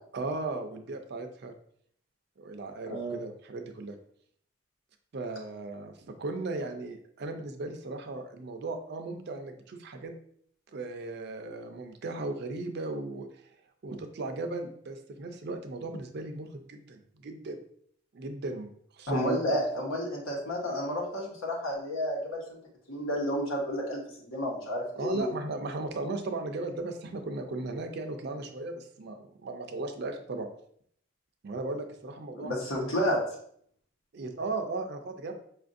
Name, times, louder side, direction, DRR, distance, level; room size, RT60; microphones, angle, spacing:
voice 1, 0.1-1.5 2.4-4.0 5.1-10.1 10.7-13.3 13.8-17.6 18.1-19.6 25.0-30.5 31.4-32.9 34.1-35.3, right 2 dB, 55° right, 6 dB, 0.4 m, -36 dB
voice 2, 19.1-22.6 22.9-25.3 32.3-33.2, equal, 85° left, -2 dB, 1.1 m, -31 dB
5.0 x 2.5 x 2.5 m, 0.65 s
head